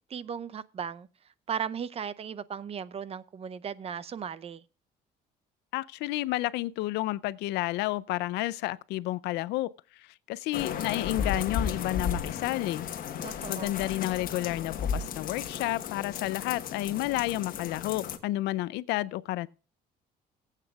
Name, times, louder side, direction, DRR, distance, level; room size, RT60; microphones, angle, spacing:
voice 1, 0.1-1.1 1.5-4.6 13.2-13.8, right 7 dB, 35° right, 0.6 m, -36 dB
voice 2, 5.7-9.7 10.0-12.9 13.5-19.5, left 17 dB, 85° left, 0.5 m, -31 dB
sound 1, 10.5-18.2, left 7 dB, 55° left, 1.2 m, -34 dB
19.0 x 8.2 x 2.3 m
cardioid pair, 110°, 17 cm